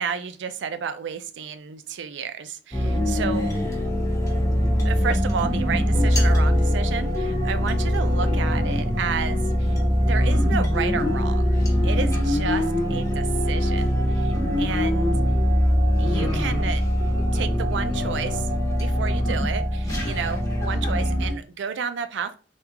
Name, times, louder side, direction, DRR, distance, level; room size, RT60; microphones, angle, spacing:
voice 1, 0.0-3.6 4.8-9.8 10.1-11.6 11.8-12.6 12.9-15.1 16.0-16.8 17.3-18.5 18.8-22.3, right 6 dB, 85° right, 10 dB, 0.4 m, -31 dB
sound 1, 2.7-21.3, equal, 20° left, 0.9 m, -22 dB
3.5 x 2.4 x 2.9 m, 0.37 s
head